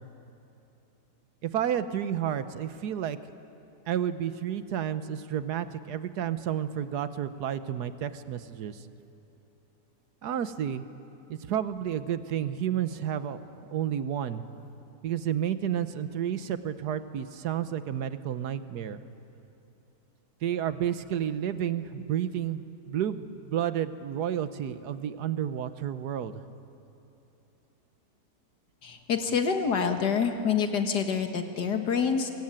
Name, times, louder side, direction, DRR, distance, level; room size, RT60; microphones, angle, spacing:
voice 1, 1.4-3.2 3.9-8.8 10.2-10.8 11.3-14.4 15.0-19.0 20.4-26.4, right 9 dB, 75° right, 12 dB, 1.5 m, -31 dB
voice 2, 28.8-32.3, left 6 dB, 80° left, 5 dB, 2.2 m, -27 dB
23.5 x 21.5 x 9.0 m, 2.9 s
omnidirectional pair, 1.8 m